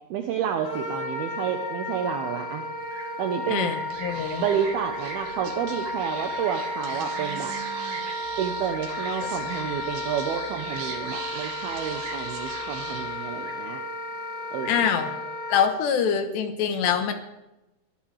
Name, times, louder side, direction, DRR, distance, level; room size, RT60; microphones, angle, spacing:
voice 1, 0.1-2.7 3.2-3.7 4.4-7.6 8.4-13.8 14.5-14.9, right 8 dB, 75° right, 4 dB, 2.4 m, -30 dB
Wind instrument woodwind instrument, 0.6-15.7, left 1 dB, 40° left, 3.4 m, -33 dB
Livestock farm animals working animals, 2.8-12.4 12.7-13.1 13.3-14.0 14.3-15.0, right 3 dB, 35° right, 1.9 m, -42 dB
voice 2, 3.5-4.4 14.7-15.1 15.5-17.1, left 7 dB, 75° left, 7 dB, 3.1 m, -24 dB
Speech / Whispering, 3.8-13.7, right 6 dB, 60° right, 2.8 m, -41 dB
21.5 x 15.0 x 3.3 m, 0.97 s
omnidirectional pair, 5.3 m